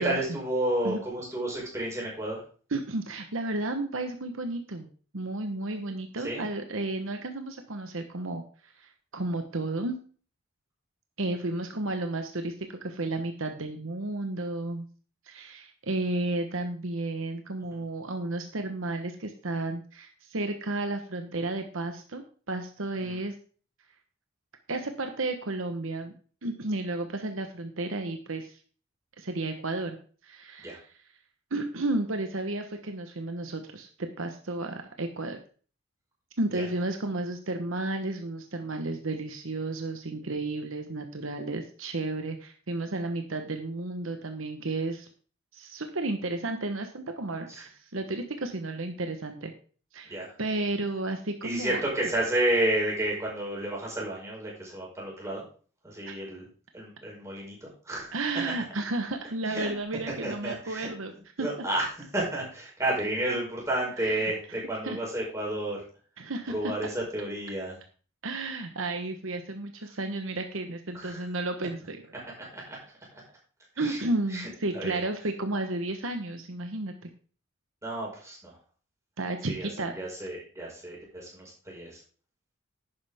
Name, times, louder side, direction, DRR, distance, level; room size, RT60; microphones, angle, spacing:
voice 1, 0.0-2.4 6.2-6.4 17.7-17.8 23.0-23.2 30.6-30.8 36.5-36.7 47.5-47.6 50.1-50.3 51.4-55.4 55.8-56.5 56.7-58.2 59.5-59.7 60.2-60.9 61.4-61.9 62.1-65.8 66.5-67.8 70.9-71.3 72.4-72.8 73.1-73.2 73.8-74.0 74.3-74.5 74.7-75.0 77.8-78.5 79.5-79.7 79.9-82.0, right 1 dB, 15° right, -4 dB, 5.2 m, -31 dB
voice 2, 2.7-4.9 5.1-10.0 11.2-14.9 15.3-23.3 24.7-26.1 26.4-28.6 29.2-30.0 30.2-30.9 31.5-33.9 34.2-35.4 36.4-45.1 45.5-49.5 49.9-50.1 50.4-51.8 56.1-56.2 58.1-61.1 61.4-61.5 64.0-64.3 64.8-65.0 66.2-66.7 68.2-72.0 73.8-77.1 79.2-79.9, right 2 dB, 70° right, 6 dB, 1.1 m, -32 dB
11.0 x 9.6 x 3.6 m, 0.40 s
head